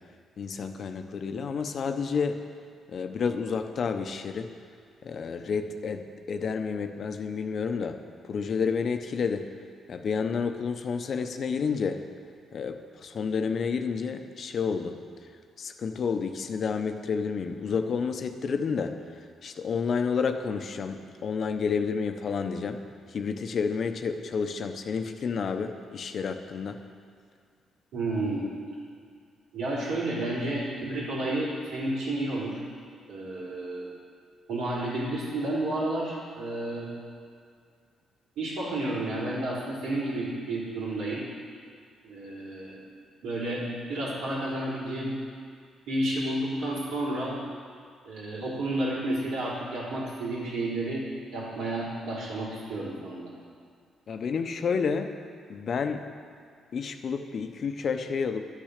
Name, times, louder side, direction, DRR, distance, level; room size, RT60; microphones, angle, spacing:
voice 1, 0.4-2.4 2.9-4.5 5.0-8.0 8.2-9.5 9.9-12.0 12.5-15.0 15.6-19.0 19.4-22.8 23.1-26.8 54.1-55.1 55.5-56.0 56.7-58.4, left 5 dB, 55° left, 7 dB, 0.8 m, -30 dB
voice 2, 27.9-28.5 29.5-32.6 33.1-33.9 34.5-36.9 38.4-41.3 42.0-42.8 43.2-45.2 45.9-47.4 48.0-51.0 51.3-53.3, right 1 dB, 85° right, -6 dB, 4.0 m, -31 dB
11.5 x 9.1 x 6.6 m, 2.2 s
cardioid pair, 100°, 0 cm